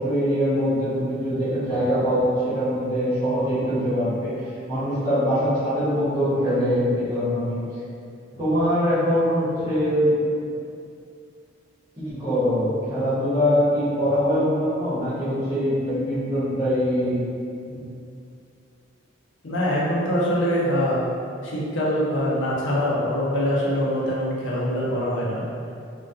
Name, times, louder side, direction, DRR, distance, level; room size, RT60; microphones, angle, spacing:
voice 1, 0.0-4.3 4.7-7.6 8.3-10.5 12.0-17.3 17.7-17.8, equal, 20° right, -13 dB, 0.9 m, -23 dB
voice 2, 19.4-21.0 21.4-25.4, equal, 65° left, -6 dB, 0.6 m, -23 dB
2.2 x 2.2 x 2.6 m, 2.5 s
head